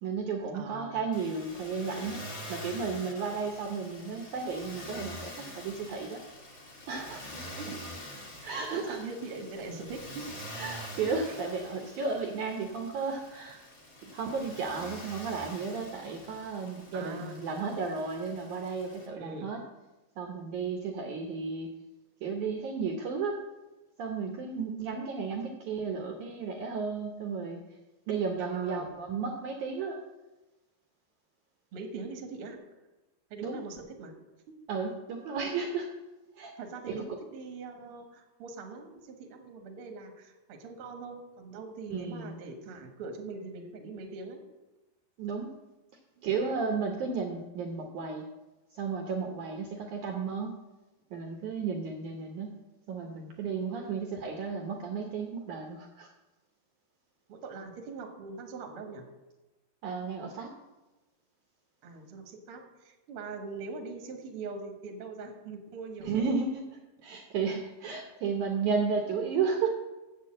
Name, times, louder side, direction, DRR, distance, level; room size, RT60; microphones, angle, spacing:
voice 1, 0.0-6.2 6.9-7.2 8.4-9.0 10.6-13.6 14.0-19.6 20.2-21.7 22.2-23.4 24.0-27.6 28.1-30.0 33.4-33.6 34.7-35.9 36.4-36.5 36.9-37.0 41.9-42.4 45.2-45.5 46.2-48.3 48.7-50.6 51.1-52.6 52.9-56.1 59.8-60.5 66.0-66.6 67.0-69.7, right 5 dB, 75° right, 3 dB, 1.8 m, -33 dB
voice 2, 0.5-1.0 7.5-7.8 8.1-10.3 11.2-11.4 16.9-17.4 19.2-19.5 28.4-28.9 31.7-32.6 33.3-34.1 36.6-44.4 46.2-46.3 53.7-54.1 57.3-59.1 61.8-66.3, right 3 dB, 60° right, 3 dB, 1.4 m, -42 dB
Motor vehicle (road), 1.1-19.1, equal, 65° left, 0.8 m, -46 dB
8.3 x 7.6 x 7.5 m, 1.1 s
omnidirectional pair, 4.7 m